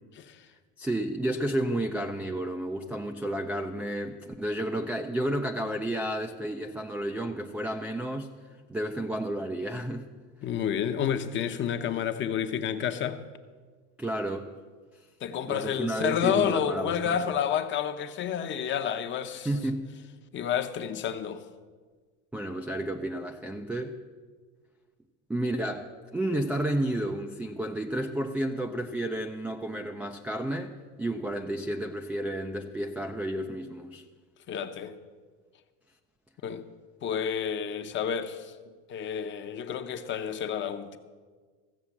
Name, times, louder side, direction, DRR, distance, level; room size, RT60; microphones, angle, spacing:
voice 1, 0.8-8.3 8.7-10.1 14.0-14.5 15.5-17.2 19.5-19.9 22.3-24.0 25.3-30.7 31.0-34.0, right 1 dB, 5° right, 0.3 m, -31 dB
voice 2, 10.4-13.2 15.2-19.5 20.3-21.4 34.5-34.9 36.4-36.7 37.0-38.5 38.9-41.0, left 8 dB, 30° left, 0.8 m, -30 dB
14.5 x 7.4 x 7.1 m
supercardioid pair, 130°, 37 cm